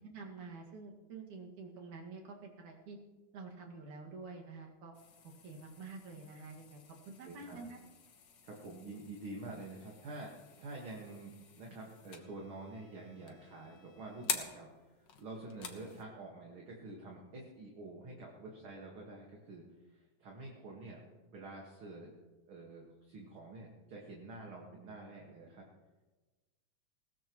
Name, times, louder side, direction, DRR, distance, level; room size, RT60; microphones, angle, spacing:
voice 1, 0.0-3.0 3.3-5.0 5.2-7.8, right 4 dB, 80° right, 0 dB, 3.5 m, -48 dB
sound 1, 4.9-16.0, left 6 dB, 50° left, 1.4 m, -47 dB
voice 2, 7.2-7.6 8.4-10.3 10.6-21.0 21.3-22.1 22.5-25.6, right 2 dB, 50° right, -2 dB, 2.4 m, -48 dB
20.5 x 17.5 x 3.1 m, 1.2 s
omnidirectional pair, 3.4 m